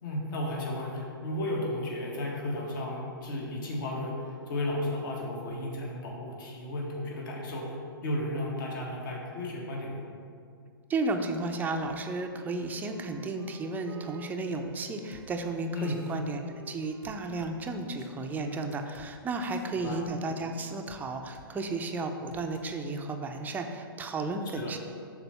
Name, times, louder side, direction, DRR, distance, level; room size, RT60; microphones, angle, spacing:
voice 1, 0.0-7.8 8.0-10.0 15.7-16.0 19.6-20.0 24.5-24.7, left 1 dB, 55° left, -2 dB, 1.6 m, -34 dB
voice 2, 10.9-16.4 16.7-24.8, right 3 dB, 15° right, 5 dB, 0.5 m, -33 dB
Wind instrument woodwind instrument, 11.2-19.4, right 4 dB, 80° right, 0.6 m, -52 dB
sound 1, 15.1-15.2 15.8-16.2 17.0-17.5 18.0-18.1 18.7-19.1 19.4-20.0 20.9-21.0 21.3-21.5 21.8-22.0 22.3-22.6, left 6 dB, 35° left, 0.7 m, -54 dB
6.7 x 3.9 x 5.6 m, 2.2 s
hypercardioid pair, 115°, 12 cm